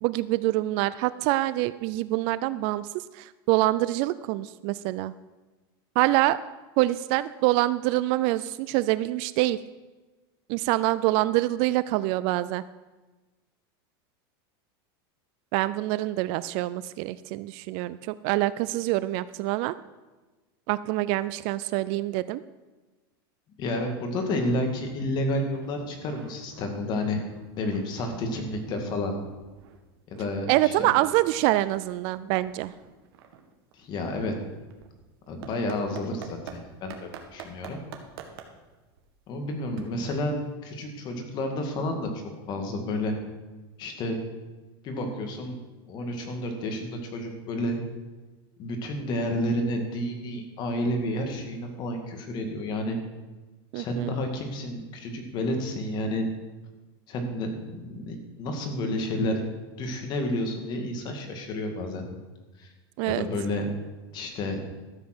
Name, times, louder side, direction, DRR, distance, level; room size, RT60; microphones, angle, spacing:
voice 1, 0.0-5.1 6.0-6.4 6.8-9.6 10.5-12.6 15.5-19.8 20.7-22.4 30.5-32.7 53.7-54.1 63.0-63.2, right 17 dB, 45° right, 16 dB, 0.4 m, -25 dB
voice 2, 23.6-27.2 27.6-29.2 30.1-30.7 33.7-34.3 35.3-37.8 39.3-40.3 40.6-42.1 42.5-43.2 43.8-44.2 44.8-45.6 45.9-47.8 48.6-53.0 53.7-56.3 57.1-59.4 59.8-62.0 62.6-62.7 63.1-63.7 64.1-64.6, left 1 dB, 35° left, 4 dB, 2.1 m, -30 dB
sound 1, 24.2-24.6 24.9-25.0 25.4-29.0 29.3-36.6 36.9-40.5, right 9 dB, 75° right, 1.7 m, -48 dB
13.0 x 7.5 x 6.1 m, 1.2 s
supercardioid pair, 150°, 13 cm